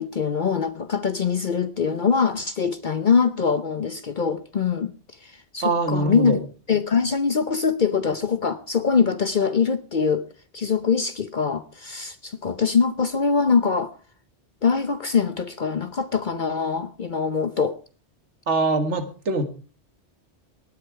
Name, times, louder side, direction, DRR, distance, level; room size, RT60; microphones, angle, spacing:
voice 1, 0.0-4.9 5.2-6.4 6.7-10.3 10.5-13.9 14.6-17.8, left 5 dB, 50° left, 0.8 m, -23 dB
voice 2, 5.6-6.4 18.5-19.5, right 2 dB, 90° right, 1.9 m, -23 dB
18.0 x 9.6 x 4.7 m
omnidirectional pair, 1.2 m